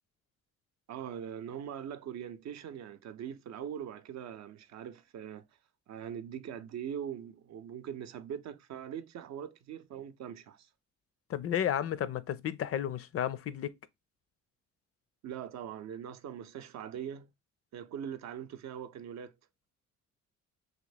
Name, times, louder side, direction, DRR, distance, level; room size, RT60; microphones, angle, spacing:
voice 1, 0.9-5.4 5.9-10.7 15.2-17.3 17.7-19.3, right 9 dB, 65° right, 0.5 m, -42 dB
voice 2, 11.3-13.7, left 10 dB, 50° left, 0.5 m, -32 dB
3.0 x 2.7 x 3.9 m
cardioid pair, 90°, 30 cm